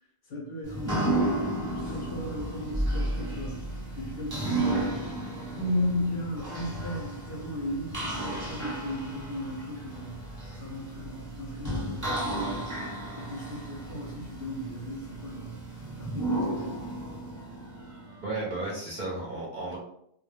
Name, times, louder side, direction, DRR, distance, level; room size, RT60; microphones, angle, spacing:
voice 1, 0.3-1.1 1.9-3.6 4.0-5.1 5.5-12.9 13.2-16.8, left 1 dB, 60° left, -1 dB, 0.7 m, -35 dB
sound 1, 0.6-18.5, right 1 dB, 15° right, 0.8 m, -33 dB
voice 2, 18.2-19.8, right 2 dB, 50° right, -4 dB, 0.7 m, -33 dB
2.2 x 2.1 x 3.1 m, 0.72 s
omnidirectional pair, 1.2 m